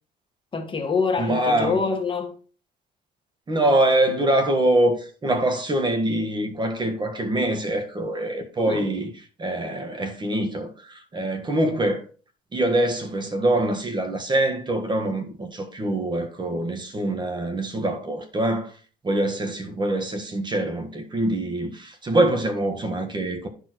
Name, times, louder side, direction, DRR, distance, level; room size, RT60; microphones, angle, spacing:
voice 1, 0.5-2.3 8.6-8.9, left 4 dB, 30° left, 1.6 m, -25 dB
voice 2, 1.2-1.8 3.5-9.1 9.4-12.0 12.5-18.7 19.0-23.5, right 1 dB, 25° right, 1.5 m, -24 dB
11.5 x 4.4 x 4.5 m
cardioid pair, 110°, 17 cm